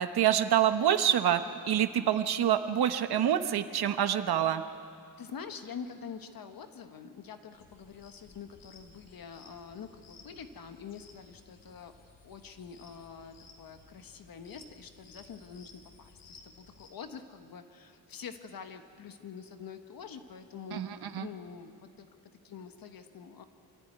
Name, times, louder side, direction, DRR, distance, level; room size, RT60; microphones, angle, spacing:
voice 1, 0.0-1.4 1.7-4.6 20.7-21.3, right 10 dB, 65° right, 9 dB, 1.0 m, -26 dB
voice 2, 5.2-11.9 12.2-22.1 22.4-23.4, left 6 dB, 60° left, 7 dB, 1.2 m, -46 dB
sound 1, 7.5-16.9, left 4 dB, 80° left, 3.0 m, -57 dB
25.5 x 14.0 x 9.4 m, 2.3 s
wide cardioid pair, 170°, 40 cm